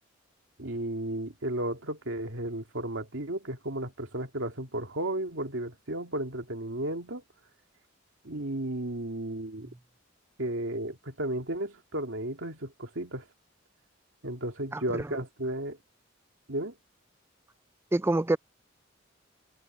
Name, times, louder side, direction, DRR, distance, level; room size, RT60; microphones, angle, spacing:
voice 1, 0.6-7.2 8.2-9.7 10.4-13.3 14.2-15.8 16.5-16.7, right 1 dB, 70° right, 2.4 m, -34 dB
voice 2, 14.7-15.1 17.9-18.4, right 2 dB, 10° right, 0.4 m, -26 dB
head